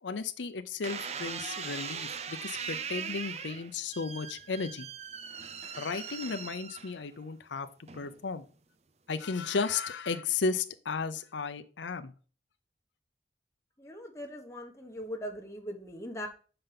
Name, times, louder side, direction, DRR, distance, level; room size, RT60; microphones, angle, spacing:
voice 1, 0.0-4.9 5.8-8.4 9.1-12.1, left 4 dB, 90° left, 11 dB, 0.6 m, -34 dB
sound 1, 0.8-7.2 7.9-8.3, right 6 dB, 35° right, 0.6 m, -40 dB
voice 2, 13.8-16.3, equal, 15° left, 2 dB, 1.2 m, -40 dB
6.8 x 5.3 x 5.8 m, 0.39 s
head